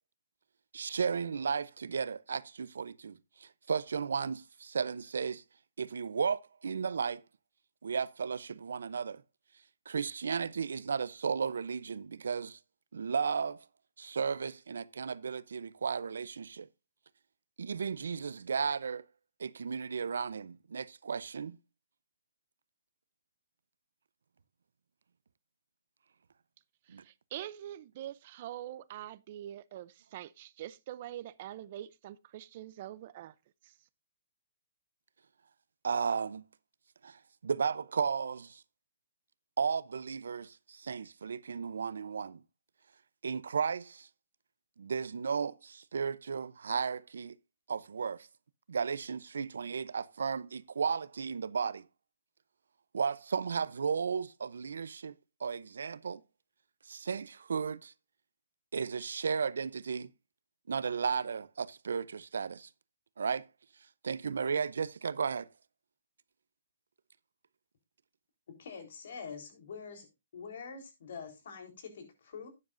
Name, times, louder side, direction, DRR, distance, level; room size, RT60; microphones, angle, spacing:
voice 1, 0.7-3.1 3.7-5.4 5.8-7.2 7.8-9.2 9.9-12.6 12.9-13.6 14.0-16.6 17.6-19.0 19.4-21.6 26.9-27.0 35.8-36.4 37.4-38.5 39.6-40.5 40.9-42.4 43.2-43.9 44.8-45.5 45.9-47.3 47.7-48.2 48.7-51.8 52.9-55.1 55.4-56.2 56.9-57.9 58.7-60.1 60.7-62.6 63.2-63.4 64.0-65.4, right 6 dB, 85° right, 0.6 m, -34 dB
voice 2, 26.9-33.3 33.6-33.8, right 12 dB, 40° right, 0.5 m, -44 dB
voice 3, 68.6-70.1 70.3-72.5, left 5 dB, 60° left, 3.8 m, -45 dB
12.0 x 9.7 x 2.6 m
hypercardioid pair, 155°, 0 cm